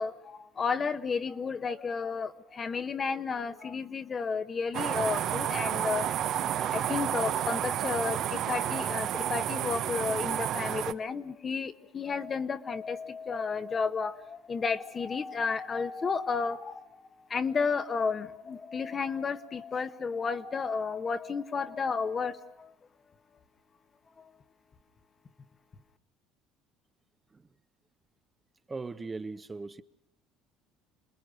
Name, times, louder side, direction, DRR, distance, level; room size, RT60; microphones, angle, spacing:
voice 1, 0.0-6.1 6.7-16.8 17.3-22.7, left 5 dB, 30° left, 1.3 m, -32 dB
sound 1, 4.7-10.9, right 10 dB, 60° right, 1.2 m, -31 dB
voice 2, 28.7-29.8, right 3 dB, 20° right, 1.0 m, -38 dB
27.5 x 20.0 x 6.5 m
supercardioid pair, 95°, 0 cm